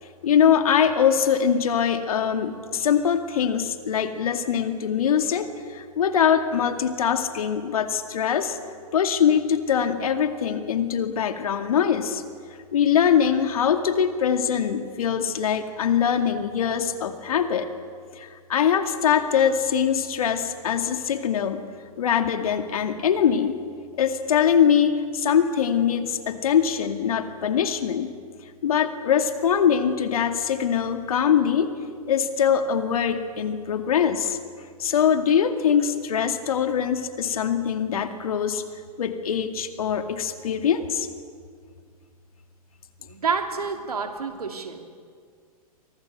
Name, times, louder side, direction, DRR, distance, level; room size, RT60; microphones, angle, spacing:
voice 1, 0.0-8.6 8.9-12.2 12.5-17.7 18.1-21.7 22.0-23.6 24.0-28.1 28.4-31.7 32.1-41.1, left 8 dB, 70° left, 7 dB, 2.3 m, -23 dB
voice 2, 43.0-44.8, right 5 dB, 80° right, 5 dB, 2.9 m, -28 dB
29.5 x 24.5 x 6.7 m, 2.1 s
hypercardioid pair, 105°, 19 cm